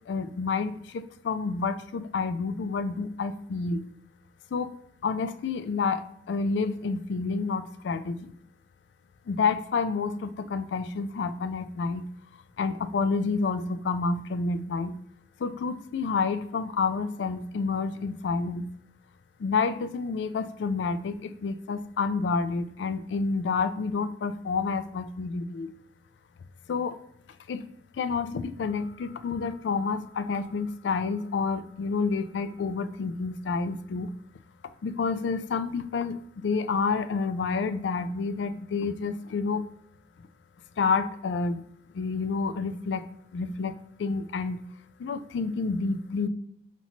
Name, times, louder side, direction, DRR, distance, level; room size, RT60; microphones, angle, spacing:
voice 1, 0.1-3.8 4.5-4.7 5.0-8.3 9.3-12.1 12.6-15.0 15.4-18.7 19.4-25.7 26.7-27.0 27.5-27.7 28.0-34.1 34.8-39.6 40.8-41.7 41.9-43.0 43.3-44.7 45.0-46.3, left 4 dB, 80° left, 11 dB, 0.3 m, -29 dB
5.6 x 3.0 x 2.8 m, 0.74 s
head